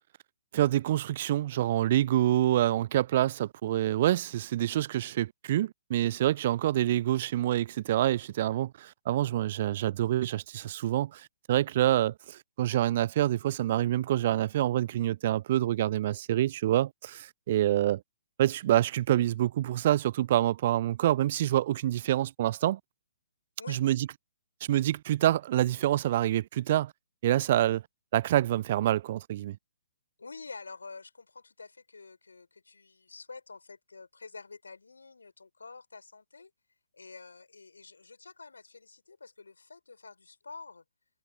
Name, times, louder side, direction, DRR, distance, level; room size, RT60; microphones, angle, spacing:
voice 1, 0.5-18.0 18.4-22.8 23.7-24.1 24.6-26.9 27.2-27.8 28.1-29.6, right 13 dB, 40° right, 0.5 m, -27 dB
voice 2, 30.2-36.5 36.9-40.8, left 4 dB, 70° left, 4.3 m, -48 dB
figure-of-eight pair, 125°, 0 cm